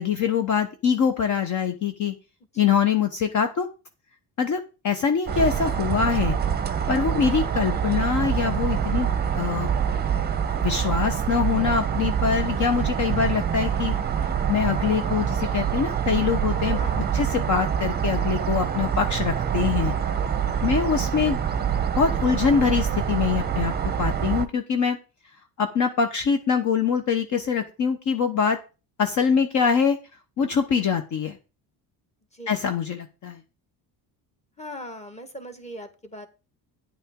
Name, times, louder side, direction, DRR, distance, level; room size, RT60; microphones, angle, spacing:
voice 1, 0.0-2.1 2.6-3.7 4.4-6.4 6.9-9.7 10.6-13.9 14.2-19.9 20.6-21.7 22.0-23.7 24.0-25.0 25.6-28.6 29.0-30.0 30.4-31.4 32.5-33.4, left 6 dB, 45° left, 7 dB, 0.9 m, -24 dB
sound 1, 5.3-24.5, right 8 dB, 25° right, 0.7 m, -25 dB
voice 2, 34.6-36.3, left 1 dB, 15° left, 7 dB, 1.6 m, -40 dB
10.0 x 8.7 x 3.7 m, 0.31 s
cardioid pair, 130°, 39 cm